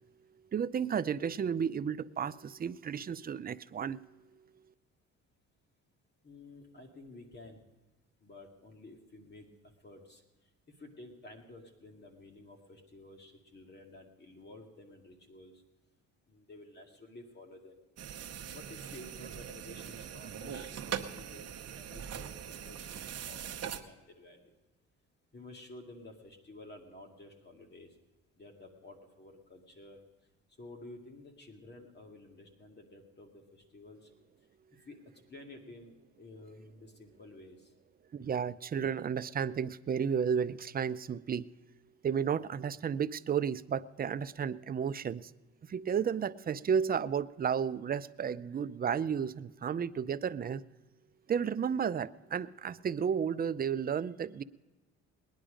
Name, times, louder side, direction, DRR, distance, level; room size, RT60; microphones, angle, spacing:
voice 1, 0.5-4.0 38.1-41.5 42.0-45.3 45.7-50.6 51.3-54.4, right 7 dB, 30° right, 14 dB, 0.5 m, -32 dB
voice 2, 6.2-7.6 8.2-9.5 9.8-10.2 10.7-15.6 16.3-17.8 18.5-24.5 25.3-27.9 28.4-30.0 30.6-34.1 34.9-35.0 35.3-37.7, left 2 dB, 35° left, 2 dB, 2.1 m, -52 dB
sound 1, 18.0-23.8, right 9 dB, 55° right, 1.0 m, -41 dB
19.5 x 10.5 x 5.1 m, 1.2 s
cardioid pair, 90°, 30 cm